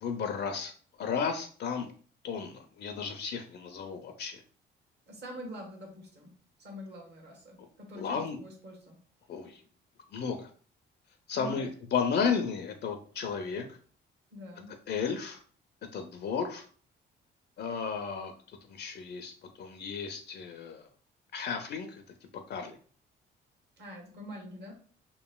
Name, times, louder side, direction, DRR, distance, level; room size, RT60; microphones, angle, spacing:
voice 1, 0.0-0.7 1.0-1.9 2.2-4.4 7.6-7.7 8.0-8.4 9.3-9.6 10.1-10.5 11.3-13.8 14.9-15.4 15.9-16.7 17.6-18.3 18.6-19.3 19.6-20.9 21.3-22.0 22.5-22.8, left 6 dB, 55° left, 6 dB, 0.4 m, -33 dB
voice 2, 5.1-6.3 6.6-9.0 11.3-11.7 12.2-12.3 14.3-14.8 23.8-24.7, equal, 55° right, 0 dB, 1.2 m, -45 dB
2.9 x 2.5 x 2.2 m, 0.43 s
cardioid pair, 90°, 20 cm